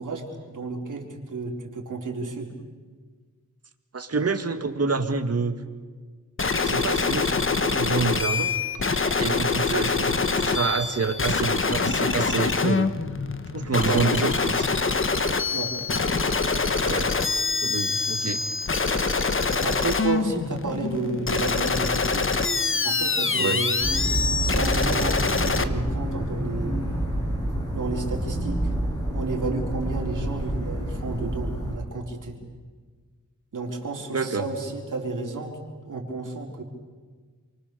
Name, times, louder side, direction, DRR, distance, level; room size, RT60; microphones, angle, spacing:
voice 1, 0.0-2.5 9.2-9.5 13.8-14.0 15.5-16.3 19.6-22.3 22.8-23.8 24.4-26.8 27.7-28.7 29.1-32.4 33.5-35.5 35.9-36.6, right 3 dB, 70° right, 0 dB, 4.2 m, -32 dB
voice 2, 3.9-5.5 6.6-8.5 9.1-12.9 13.5-14.8 16.7-17.1 17.6-18.4 23.4-23.6 34.1-34.4, right 4 dB, 50° right, 7 dB, 2.0 m, -27 dB
sound 1, 6.4-25.6, left 4 dB, 40° left, 1.2 m, -25 dB
sound 2, 23.8-31.8, right 1 dB, 10° left, 7.4 m, -28 dB
29.0 x 24.0 x 7.0 m, 1.5 s
wide cardioid pair, 110°, 32 cm